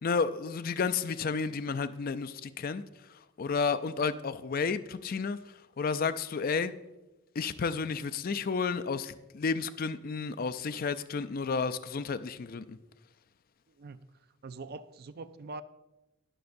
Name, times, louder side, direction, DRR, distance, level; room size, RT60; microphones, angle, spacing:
voice 1, 0.0-2.8 3.4-5.4 5.8-6.7 7.4-12.8, left 5 dB, 40° left, 0.4 m, -31 dB
voice 2, 13.8-14.1 14.4-15.6, right 3 dB, 45° right, 0.4 m, -43 dB
20.0 x 6.8 x 2.6 m
head